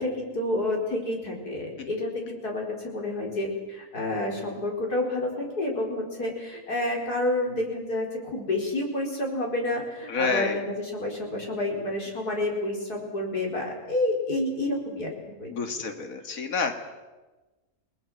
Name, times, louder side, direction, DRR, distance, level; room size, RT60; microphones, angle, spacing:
voice 1, 0.0-15.1 15.4-15.5 15.8-15.9, left 1 dB, 90° left, -1 dB, 5.2 m, -29 dB
voice 2, 10.1-10.6 15.5-16.7, left 4 dB, 65° left, 5 dB, 2.3 m, -28 dB
29.0 x 20.0 x 6.3 m, 1.2 s
omnidirectional pair, 1.6 m